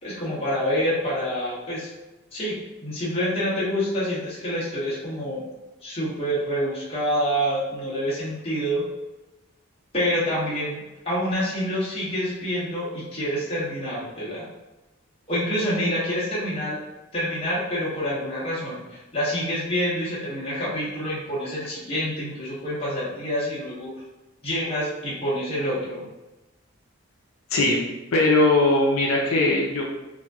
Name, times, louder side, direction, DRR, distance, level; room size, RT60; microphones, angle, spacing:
voice 1, 0.0-1.9 2.3-2.5 2.8-5.4 5.8-8.8 9.9-14.5 15.3-16.8 17.1-23.9 24.4-26.1, equal, 25° left, -8 dB, 1.1 m, -27 dB
voice 2, 27.5-27.8 28.1-29.9, left 2 dB, 75° left, -2 dB, 0.5 m, -20 dB
4.3 x 2.6 x 2.3 m, 1.0 s
head